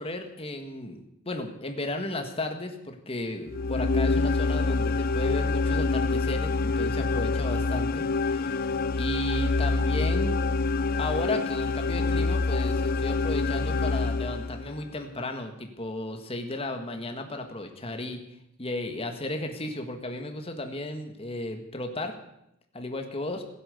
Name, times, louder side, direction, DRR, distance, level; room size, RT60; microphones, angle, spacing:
voice 1, 0.0-8.6 9.0-10.4 11.0-18.2 18.6-22.1 22.7-23.4, left 1 dB, 30° left, 5 dB, 1.8 m, -34 dB
sound 1, 3.5-14.8, left 3 dB, 50° left, 0.5 m, -26 dB
16.0 x 10.5 x 8.2 m, 0.81 s
head